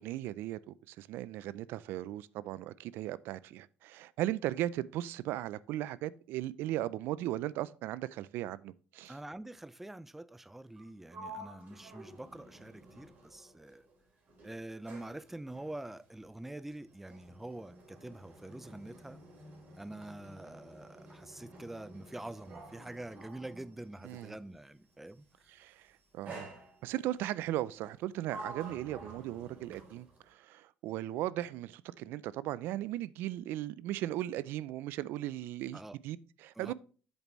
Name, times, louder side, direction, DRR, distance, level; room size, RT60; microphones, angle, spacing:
voice 1, 0.0-9.1 24.0-24.4 25.5-25.9 26.1-26.5 26.8-36.7, right 14 dB, 80° right, 0.4 m, -37 dB
voice 2, 9.1-13.9 14.4-19.2 19.8-25.5 35.7-36.0 36.5-36.7, right 1 dB, 5° right, 0.4 m, -46 dB
Sliding door, 10.7-14.0 14.3-24.4 25.3-25.6 26.2-27.2 27.8-30.3, right 2 dB, 50° right, 3.7 m, -51 dB
8.1 x 6.9 x 3.1 m
cardioid pair, 110°, 4 cm